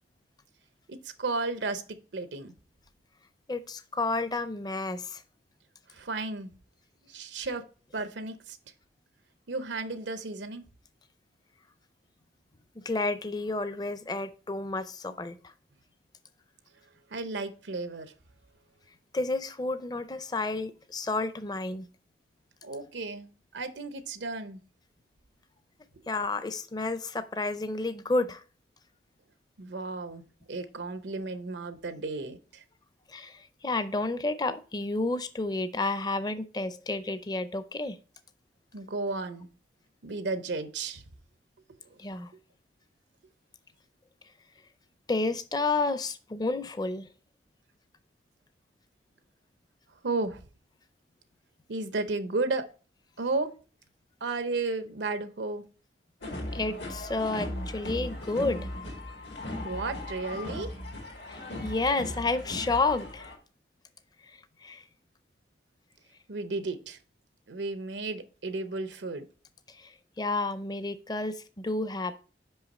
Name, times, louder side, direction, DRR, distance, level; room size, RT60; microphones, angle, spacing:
voice 1, 0.9-2.5 5.9-6.5 7.1-7.6 7.9-8.6 9.5-10.6 17.1-18.1 22.6-24.6 29.6-32.6 38.7-39.5 40.0-41.0 50.0-50.4 51.7-52.7 53.2-53.5 54.2-55.6 59.6-60.7 66.3-67.0 67.5-69.2, right 3 dB, 85° right, 0.7 m, -33 dB
voice 2, 3.5-5.2 12.8-15.5 19.1-21.9 26.1-28.4 33.1-38.0 42.0-42.3 45.1-47.1 56.5-58.6 61.3-63.3 64.3-64.8 69.7-72.2, left 3 dB, 25° left, 0.5 m, -31 dB
sound 1, 56.2-63.4, left 1 dB, 80° left, 1.9 m, -38 dB
5.6 x 5.4 x 4.1 m
head